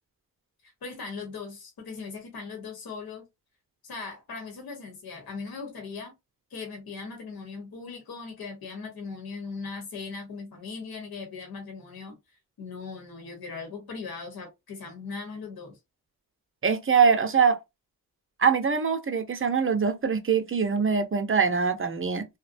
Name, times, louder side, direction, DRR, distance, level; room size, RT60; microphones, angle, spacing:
voice 1, 0.6-3.3 3.8-6.1 6.5-12.2 12.6-15.8, left 4 dB, 75° left, 1.1 m, -39 dB
voice 2, 16.6-17.6 18.4-22.3, right 6 dB, 35° right, 0.6 m, -23 dB
2.7 x 2.1 x 2.5 m
cardioid pair, 55°, 36 cm